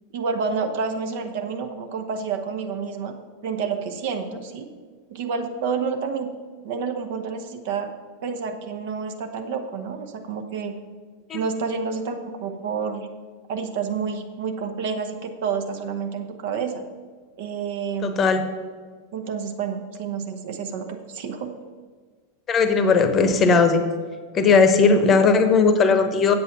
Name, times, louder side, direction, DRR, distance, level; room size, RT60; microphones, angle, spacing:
voice 1, 0.1-3.1 3.4-4.7 5.1-6.3 6.6-7.9 8.2-10.8 11.3-13.1 13.5-16.8 17.4-18.3 19.1-21.5, right 5 dB, 50° right, 6 dB, 1.0 m, -29 dB
voice 2, 18.0-18.4 22.5-23.9 24.3-26.3, left 4 dB, 25° left, 9 dB, 1.0 m, -17 dB
8.2 x 8.0 x 5.8 m, 1.5 s
figure-of-eight pair, 90°, 0 cm